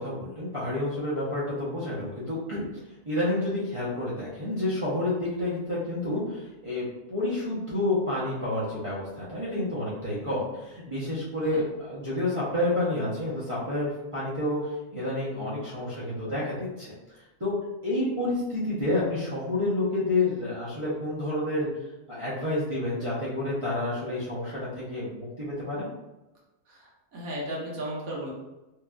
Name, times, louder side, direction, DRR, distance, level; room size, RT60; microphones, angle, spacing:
voice 1, 0.0-2.7 3.1-16.9 17.4-17.5 17.8-21.7 22.1-25.9, left 2 dB, 40° right, -10 dB, 0.4 m, -29 dB
voice 2, 26.7-28.3, equal, 70° right, -5 dB, 1.3 m, -35 dB
3.0 x 2.5 x 2.2 m, 1.0 s
omnidirectional pair, 1.5 m